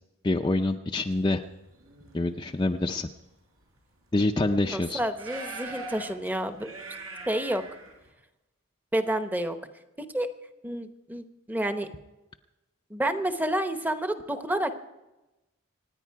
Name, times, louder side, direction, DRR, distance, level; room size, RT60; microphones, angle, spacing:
voice 1, 0.2-1.4 2.1-3.1 4.1-5.0, left 2 dB, 20° left, 3 dB, 0.5 m, -26 dB
sound 1, 1.6-2.2 3.0-3.1 3.6-3.7 4.4-4.5 5.1-8.1, right 3 dB, 80° right, 5.2 m, -41 dB
voice 2, 4.7-6.7 7.3-7.6 8.9-9.6 10.1-10.3 10.6-11.9 12.9-14.7, right 1 dB, 10° right, 8 dB, 0.9 m, -29 dB
26.0 x 10.0 x 4.7 m, 1.0 s
head